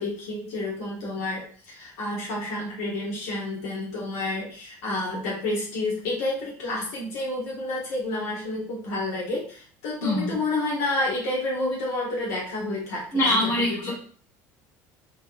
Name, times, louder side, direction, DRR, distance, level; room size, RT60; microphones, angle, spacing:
voice 1, 0.0-13.9, left 2 dB, 90° left, -4 dB, 1.4 m, -30 dB
voice 2, 10.0-10.4 13.1-13.9, left 1 dB, 45° left, -3 dB, 1.5 m, -23 dB
3.9 x 2.3 x 2.6 m, 0.44 s
supercardioid pair, 105°, 8 cm